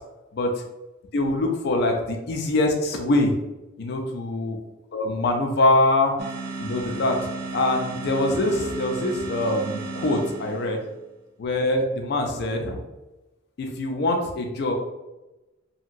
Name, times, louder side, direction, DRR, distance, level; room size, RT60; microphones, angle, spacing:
voice 1, 1.1-3.3 3.8-4.6 4.9-6.1 6.6-7.3 7.5-10.8 11.4-12.8 13.6-14.7, left 2 dB, 55° left, 2 dB, 0.4 m, -23 dB
sound 1, 6.2-10.9, right 3 dB, 50° right, 0.4 m, -34 dB
2.8 x 2.7 x 2.4 m, 1.1 s
head